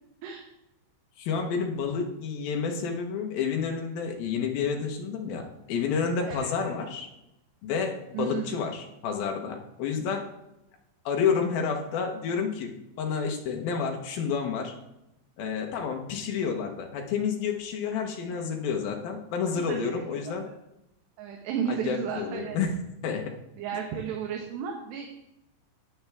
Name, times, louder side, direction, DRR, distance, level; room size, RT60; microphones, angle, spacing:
voice 1, 1.2-7.1 7.6-10.3 11.1-14.7 15.4-20.4 21.7-23.3, left 6 dB, 65° left, 2 dB, 2.5 m, -30 dB
voice 2, 6.2-6.7 8.1-8.6 18.3-18.4 19.5-19.9 20.3-20.4 21.2-22.6 23.6-25.1, right 8 dB, 70° right, 2 dB, 3.1 m, -33 dB
15.0 x 9.7 x 3.6 m, 0.90 s
omnidirectional pair, 5.5 m